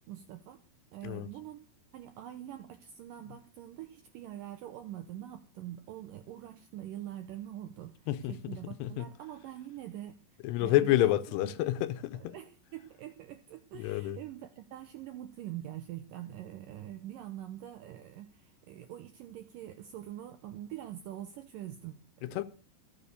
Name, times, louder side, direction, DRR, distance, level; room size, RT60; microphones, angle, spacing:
voice 1, 0.1-0.6 0.9-1.7 1.9-10.2 10.6-11.2 11.4-11.5 12.2-22.4, right 12 dB, 80° right, 2.0 m, -44 dB
voice 2, 10.4-12.3 13.8-14.2 22.2-22.4, left 14 dB, 85° left, 2.8 m, -28 dB
14.5 x 7.4 x 6.7 m
omnidirectional pair, 4.7 m